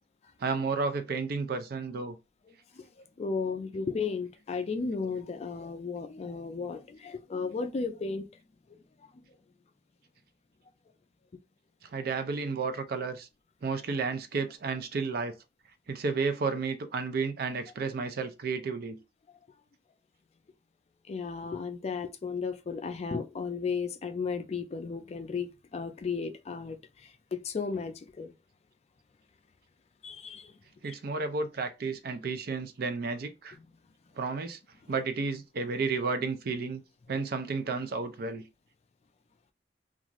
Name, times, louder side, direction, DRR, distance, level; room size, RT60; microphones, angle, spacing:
voice 1, 0.4-2.2 11.9-13.3 13.6-15.3 15.9-19.0 30.8-33.6 34.2-34.6 34.9-36.8 37.1-38.4, right 4 dB, 60° right, 0.4 m, -32 dB
voice 2, 2.5-8.3 8.7-9.2 12.0-12.1 21.1-28.3 30.0-30.5 30.9-31.0, left 5 dB, 40° left, 0.3 m, -35 dB
2.5 x 2.3 x 2.9 m
head